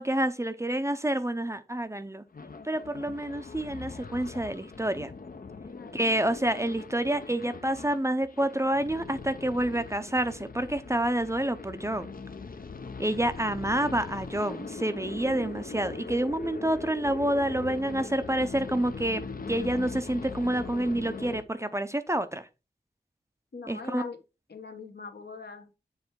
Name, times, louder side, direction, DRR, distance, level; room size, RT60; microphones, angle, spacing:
voice 1, 0.0-2.2 2.6-5.1 5.9-12.1 13.0-19.2 19.5-22.5 23.7-24.1, right 1 dB, 15° right, 0.6 m, -28 dB
sound 1, 2.3-21.4, left 4 dB, 55° left, 0.7 m, -41 dB
voice 2, 5.7-6.1 23.5-24.2 24.5-25.7, left 4 dB, 70° left, 1.2 m, -42 dB
7.3 x 3.4 x 4.6 m
wide cardioid pair, 50°, 17 cm